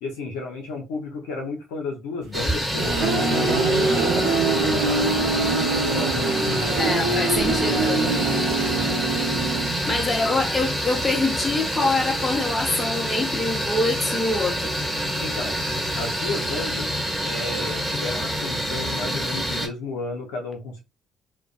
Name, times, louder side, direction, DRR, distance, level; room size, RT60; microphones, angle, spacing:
voice 1, 0.0-5.5 5.8-7.1 15.2-15.6 15.9-16.9 17.2-20.8, left 3 dB, 80° left, 0.7 m, -33 dB
sound 1, 2.3-19.7, equal, 5° right, 1.1 m, -27 dB
sound 2, 2.4-10.1, right 3 dB, 80° right, 0.7 m, -24 dB
voice 2, 6.8-8.0 9.8-14.7, left 2 dB, 25° left, 0.9 m, -25 dB
2.4 x 2.1 x 2.4 m
hypercardioid pair, 55°, 0 cm